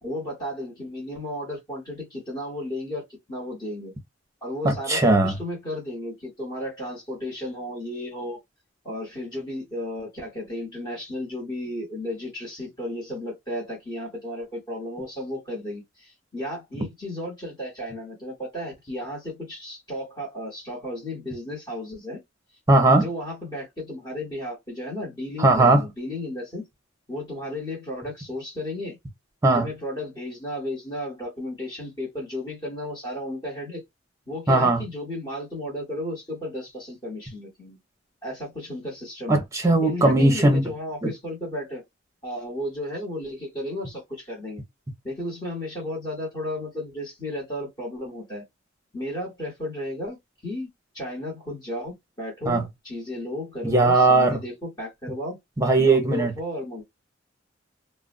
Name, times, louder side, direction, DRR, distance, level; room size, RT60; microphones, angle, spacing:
voice 1, 0.0-3.9 4.4-8.4 8.8-22.2 23.0-26.6 27.1-29.0 29.5-33.8 34.3-37.8 38.2-39.4 39.8-41.8 42.2-44.6 45.0-48.4 48.9-50.2 50.4-50.7 50.9-55.4 55.8-56.8, left 1 dB, 20° left, 1.3 m, -34 dB
voice 2, 4.6-5.4 16.8-16.9 22.7-23.1 25.4-25.8 29.4-29.7 34.5-34.8 39.3-40.6 41.0-41.1 52.5-52.6 53.6-54.4 55.6-56.3, right 2 dB, 15° right, 0.8 m, -19 dB
2.5 x 2.1 x 2.4 m
head